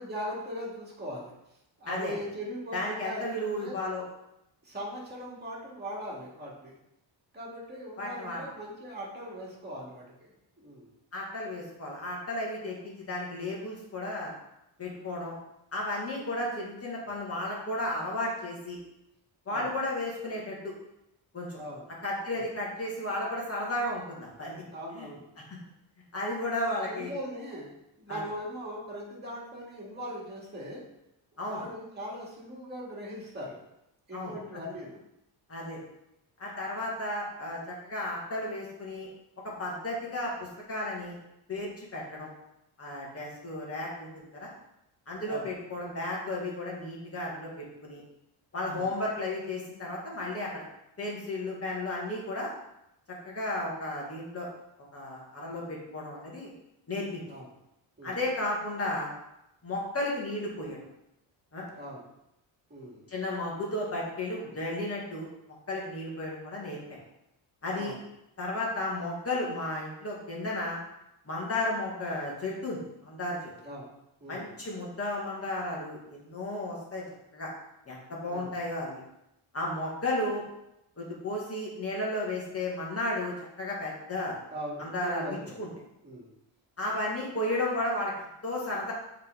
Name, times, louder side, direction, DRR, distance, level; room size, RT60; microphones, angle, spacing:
voice 1, 0.0-1.3 1.8-3.8 4.6-6.7 7.3-10.3 10.6-10.9 19.5-19.7 21.6-21.9 22.3-22.5 24.7-25.3 26.9-30.8 31.4-33.6 34.1-35.0 45.3-45.5 48.7-48.9 57.3-57.5 58.0-58.2 61.8-62.1 62.7-63.1 67.7-67.9 73.6-73.9 74.2-74.5 78.3-78.6 84.5-85.6 86.0-86.3, equal, 20° right, -4 dB, 2.2 m, -40 dB
voice 2, 2.7-4.0 8.0-8.4 11.1-14.3 14.8-15.3 15.7-18.8 19.5-20.7 21.3-21.6 22.0-24.6 24.9-25.1 25.5-25.6 26.1-27.1 28.1-28.2 31.4-31.6 34.1-34.3 35.5-35.8 36.4-39.1 39.4-41.2 41.5-42.3 42.8-44.5 45.1-48.0 48.5-50.6 51.0-52.5 53.2-54.5 54.9-56.5 56.9-57.2 58.0-59.1 59.6-60.8 61.5-61.7 63.1-65.3 65.7-67.0 67.6-68.0 68.4-70.8 71.2-73.4 74.3-77.0 77.3-77.5 77.9-79.0 79.5-80.4 81.0-84.4 84.8-85.7 86.8-88.9, left 1 dB, 30° left, -4 dB, 2.1 m, -33 dB
7.3 x 3.9 x 3.9 m, 0.85 s
cardioid pair, 125°, 47 cm